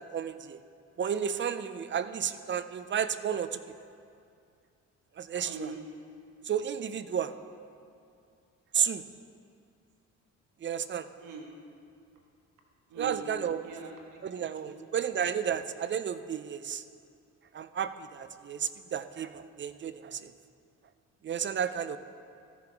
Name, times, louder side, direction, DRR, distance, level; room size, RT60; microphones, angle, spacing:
voice 1, 0.1-0.6 1.0-3.6 5.2-5.7 6.5-7.3 8.7-9.0 10.6-11.1 13.0-13.6 14.2-16.8 17.5-20.3 21.2-22.0, right 8 dB, 40° right, 12 dB, 0.5 m, -32 dB
voice 2, 5.4-5.9 11.2-11.6 12.9-14.8, right 4 dB, 85° right, 1 dB, 1.4 m, -43 dB
14.5 x 7.0 x 4.6 m, 2.4 s
cardioid pair, 90°, 30 cm